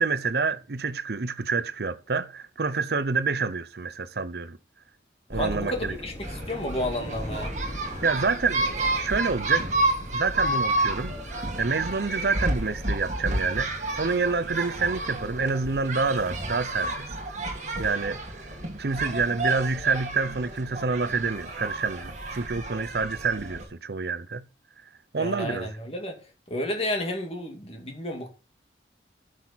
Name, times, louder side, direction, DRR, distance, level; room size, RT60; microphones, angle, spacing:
voice 1, 0.0-4.6 5.3-5.9 8.0-9.7 10.1-13.7 14.0-17.4 17.8-18.5 18.8-24.4 25.1-25.7, right 4 dB, 60° right, 0.7 m, -27 dB
voice 2, 5.3-7.5 25.2-26.2 26.5-28.3, left 1 dB, 35° left, 2.1 m, -31 dB
sound 1, 5.3-16.8, equal, 15° left, 4.6 m, -41 dB
sound 2, 6.2-23.6, right 2 dB, 40° right, 2.1 m, -31 dB
12.5 x 6.3 x 4.1 m
head